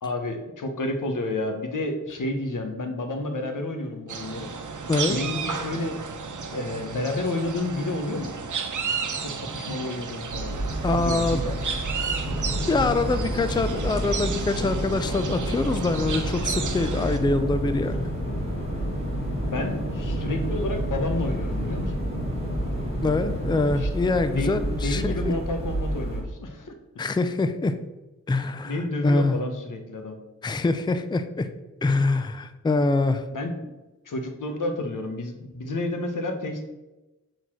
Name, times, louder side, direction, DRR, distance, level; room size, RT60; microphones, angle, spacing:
voice 1, 0.0-4.5 5.0-6.0 6.4-8.3 9.2-10.6 10.9-11.6 19.5-22.0 23.8-23.9 24.3-24.5 24.8-27.2 28.6-30.2 33.3-33.7 34.0-36.6, left 2 dB, 85° left, 5 dB, 1.2 m, -30 dB
sound 1, 4.1-17.2, right 5 dB, 75° right, 0.9 m, -33 dB
sound 2, 10.3-26.2, right 1 dB, 20° right, 1.9 m, -31 dB
voice 2, 10.8-11.4 12.7-18.0 23.0-25.3 27.0-27.7 28.3-28.8 29.0-29.4 30.4-31.5 31.8-33.2, left 3 dB, 15° left, 10 dB, 0.4 m, -24 dB
sound 3, 12.3-23.8, left 2 dB, 40° left, 1.5 m, -33 dB
6.6 x 4.1 x 6.1 m, 1.0 s
wide cardioid pair, 130°, 31 cm